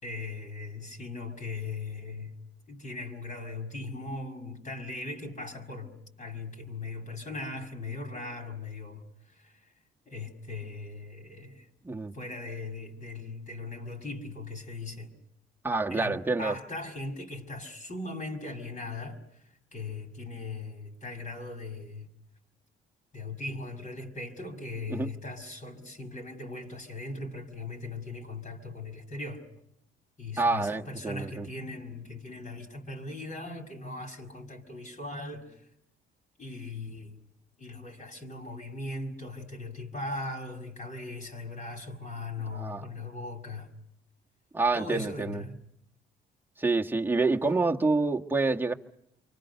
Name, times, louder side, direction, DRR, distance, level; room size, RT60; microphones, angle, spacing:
voice 1, 0.0-2.3 2.7-9.7 10.1-11.7 12.1-15.1 15.9-22.1 23.1-29.4 30.2-35.7 36.4-37.2 37.6-43.7 44.7-45.6 47.5-47.6, left 2 dB, 40° left, 5.8 m, -39 dB
voice 2, 15.6-16.5 24.9-25.1 30.4-31.5 42.5-42.8 44.5-45.4 46.6-48.7, right 3 dB, 10° right, 1.5 m, -27 dB
28.5 x 24.5 x 6.8 m
cardioid pair, 90°, 20 cm